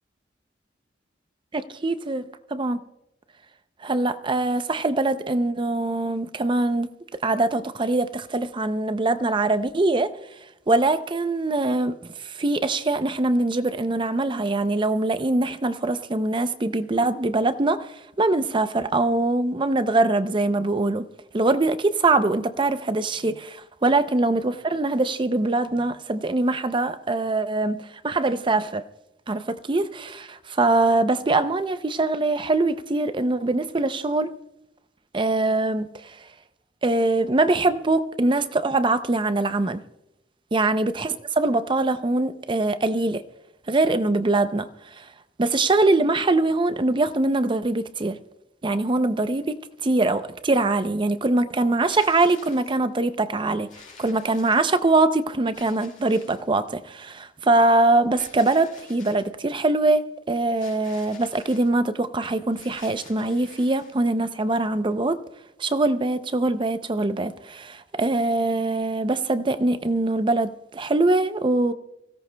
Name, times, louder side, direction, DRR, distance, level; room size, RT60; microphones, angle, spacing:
voice 1, 1.5-2.2 2.5-2.8 3.8-6.9 7.2-10.1 10.7-21.1 21.3-28.8 29.3-34.3 35.1-36.1 36.8-39.8 40.5-43.2 43.7-44.7 45.0-45.1 45.4-48.2 48.6-53.7 54.0-65.2 65.6-71.7, right 2 dB, 30° right, 0.5 m, -23 dB
sound 1, 51.7-52.8 53.7-55.0 55.5-56.5 58.1-59.3 60.5-61.7 62.5-64.0, left 5 dB, 45° left, 3.1 m, -49 dB
26.0 x 16.5 x 2.2 m
head